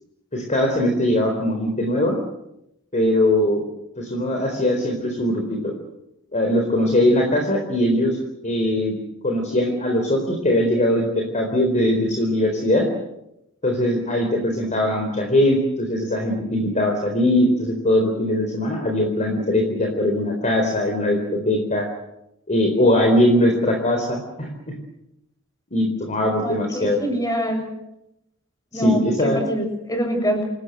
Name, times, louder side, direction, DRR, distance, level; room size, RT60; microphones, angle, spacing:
voice 1, 0.3-2.1 2.9-3.6 4.0-5.8 6.3-8.2 8.4-8.9 9.2-12.9 13.6-21.9 22.5-24.5 25.7-27.0 28.7-29.4, left 1 dB, 35° left, 2 dB, 4.2 m, -21 dB
voice 2, 26.4-27.6 28.7-30.4, equal, 15° left, 4 dB, 7.6 m, -25 dB
28.5 x 18.0 x 8.0 m, 0.86 s
head